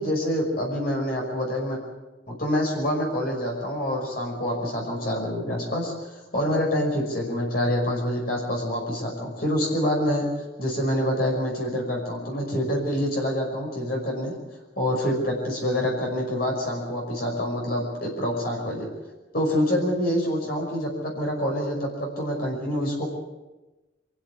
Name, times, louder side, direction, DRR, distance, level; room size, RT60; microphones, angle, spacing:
voice 1, 0.0-1.8 2.3-10.3 10.6-14.3 14.8-18.9 19.3-23.1, equal, 50° left, 0 dB, 5.8 m, -26 dB
26.0 x 16.0 x 8.4 m, 1.1 s
head